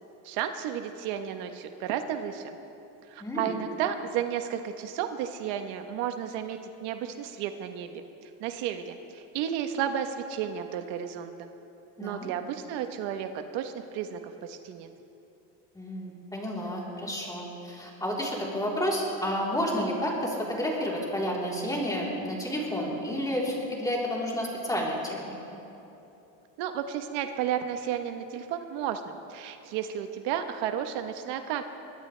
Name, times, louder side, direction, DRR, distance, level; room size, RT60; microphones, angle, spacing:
voice 1, 0.2-2.6 3.1-11.5 12.0-14.9 26.6-31.6, right 9 dB, 80° right, 7 dB, 1.2 m, -33 dB
voice 2, 3.2-3.6 12.0-12.3 15.7-25.3, equal, 10° left, -4 dB, 3.7 m, -30 dB
23.0 x 19.0 x 3.3 m, 3.0 s
cardioid pair, 135°, 41 cm